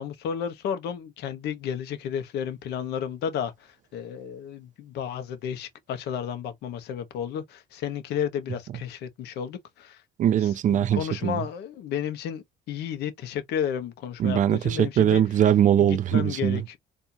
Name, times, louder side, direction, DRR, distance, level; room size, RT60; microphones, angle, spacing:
voice 1, 0.0-10.0 10.7-15.2 15.8-16.8, left 8 dB, 80° left, 1.1 m, -32 dB
voice 2, 10.2-11.4 14.2-16.6, right 10 dB, 50° right, 0.5 m, -21 dB
4.3 x 2.7 x 2.7 m
cardioid pair, 110°, 17 cm